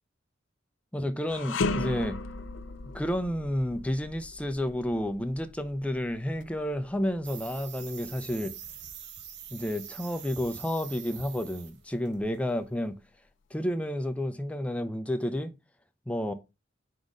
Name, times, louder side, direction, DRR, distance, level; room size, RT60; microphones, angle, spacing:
voice 1, 0.9-2.2 2.9-8.5 9.5-13.0 13.5-15.5 16.1-16.3, left 1 dB, 5° left, 0.5 m, -31 dB
sound 1, 1.3-10.5 10.9-11.1 12.0-12.9, left 3 dB, 65° left, 0.5 m, -38 dB
sound 2, 7.2-11.8 12.1-12.4, right 9 dB, 55° right, 0.7 m, -44 dB
5.1 x 4.1 x 4.8 m
head